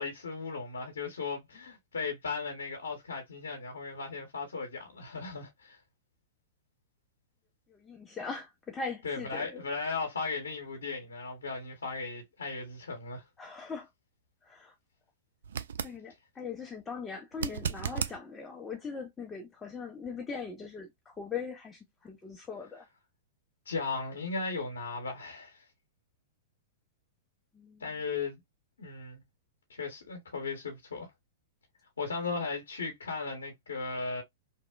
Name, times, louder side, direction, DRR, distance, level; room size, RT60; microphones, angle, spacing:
voice 1, 0.0-5.8 9.0-13.2 23.7-25.6 27.8-28.4 28.8-29.2 29.7-31.1 32.0-34.2, left 4 dB, 85° left, 0.9 m, -36 dB
voice 2, 7.7-9.6 13.4-13.9 14.4-14.8 15.8-22.9 27.5-28.0, left 5 dB, 15° left, 0.5 m, -40 dB
sound 1, 15.4-16.0 17.3-18.2 21.2-21.3, right 8 dB, 75° right, 0.3 m, -34 dB
2.9 x 2.0 x 2.3 m
hypercardioid pair, 110°, 0 cm